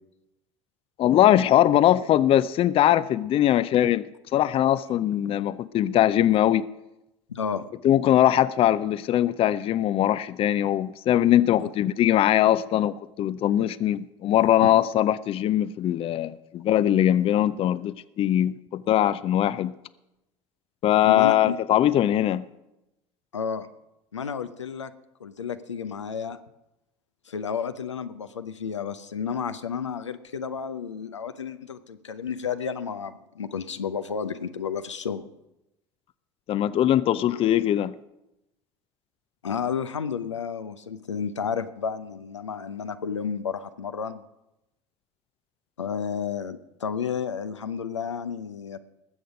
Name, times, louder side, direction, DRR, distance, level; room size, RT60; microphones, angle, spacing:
voice 1, 1.0-4.0 4.3-6.7 7.8-19.7 20.8-22.4 36.5-37.9, left 12 dB, 40° left, 0.5 m, -21 dB
voice 2, 7.3-7.7 11.6-11.7 14.6-14.7 21.1-21.6 23.3-23.7 24.1-24.9 25.2-26.4 27.3-35.3 39.4-44.2 45.8-48.8, left 7 dB, 85° left, 0.7 m, -31 dB
20.0 x 7.9 x 5.1 m
figure-of-eight pair, 70°, 15 cm